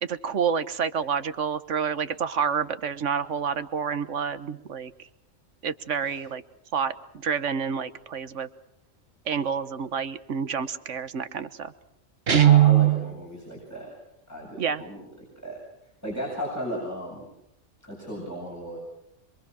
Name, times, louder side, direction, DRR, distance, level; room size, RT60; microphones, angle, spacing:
voice 1, 0.0-4.9 5.6-6.4 6.7-6.9 7.2-8.5 9.3-11.7 14.6-14.8, right 6 dB, 70° right, 11 dB, 1.5 m, -28 dB
voice 2, 12.3-13.9 14.3-15.0 15.4-15.6 16.0-17.2 17.9-18.8, equal, 10° left, -4 dB, 8.0 m, -35 dB
Guitar, 12.3-13.1, right 12 dB, 50° right, 1.5 m, -17 dB
26.5 x 24.0 x 6.3 m, 0.79 s
omnidirectional pair, 1.3 m